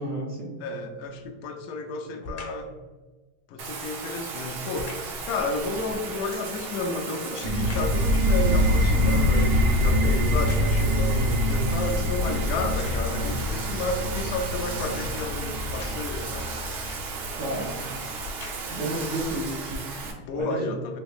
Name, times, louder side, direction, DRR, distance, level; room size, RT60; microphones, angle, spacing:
voice 1, 0.0-0.6 17.4-17.9 18.7-20.0 20.4-20.6, right 1 dB, 20° right, -2 dB, 0.4 m, -32 dB
voice 2, 0.6-2.7 3.5-16.5 18.8-19.0 20.2-21.0, left 3 dB, 55° left, 5 dB, 0.6 m, -31 dB
sound 1, 1.1-1.4 2.2-2.7 4.7-5.2 6.6-8.1 8.5-11.0 11.7-11.8 12.6-13.3 15.6-16.2 17.2-17.4 18.1-18.9 19.5-19.6, left 2 dB, 30° left, 0.9 m, -42 dB
Bathtub (filling or washing), 3.6-20.1, right 4 dB, 60° right, 0.9 m, -35 dB
sound 2, 7.4-18.8, left 1 dB, 85° right, 1.2 m, -25 dB
3.0 x 2.9 x 3.4 m, 1.2 s
supercardioid pair, 145°, 45 cm